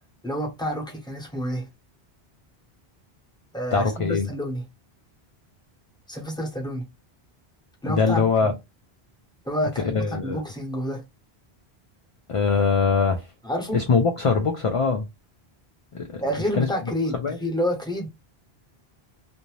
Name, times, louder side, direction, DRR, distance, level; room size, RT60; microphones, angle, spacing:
voice 1, 0.2-1.7 3.5-4.7 6.1-6.9 7.8-8.5 9.4-11.0 13.4-13.8 16.2-18.1, equal, 5° left, 0.8 m, -29 dB
voice 2, 3.7-4.3 7.8-8.5 9.9-10.4 12.3-13.3 13.7-15.1 15.9-16.2 16.6-16.7 17.2-17.4, left 5 dB, 50° left, 0.4 m, -22 dB
2.6 x 2.1 x 3.1 m
omnidirectional pair, 1.1 m